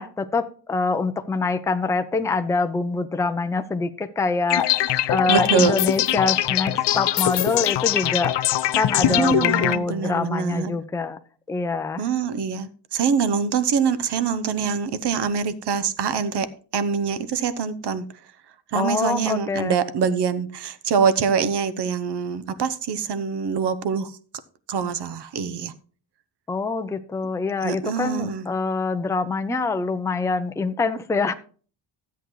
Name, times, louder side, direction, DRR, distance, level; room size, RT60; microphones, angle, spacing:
voice 1, 0.0-4.8 5.1-8.3 8.7-11.2 11.5-12.0 18.7-19.7 26.5-31.3, left 4 dB, 5° left, 0.4 m, -25 dB
sound 1, 4.5-9.8, left 13 dB, 65° left, 0.5 m, -22 dB
voice 2, 5.3-5.8 9.0-10.7 12.0-16.5 16.7-18.1 18.7-24.1 24.7-25.7 27.6-28.5, right 6 dB, 60° right, 0.9 m, -24 dB
13.5 x 8.1 x 3.1 m
wide cardioid pair, 155°, 46 cm